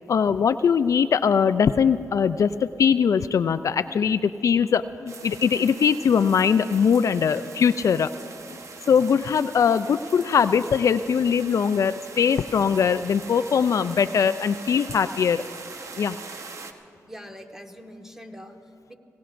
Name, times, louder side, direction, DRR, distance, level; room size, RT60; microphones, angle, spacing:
voice 1, 0.1-8.1 8.9-15.4 16.0-16.2, left 7 dB, 65° left, 13 dB, 0.3 m, -21 dB
sound 1, 5.1-16.7, right 4 dB, 60° right, 1.1 m, -42 dB
voice 2, 8.4-8.7 17.1-18.9, equal, 5° right, 4 dB, 1.5 m, -44 dB
25.0 x 18.0 x 2.6 m, 2.8 s
cardioid pair, 65°, 6 cm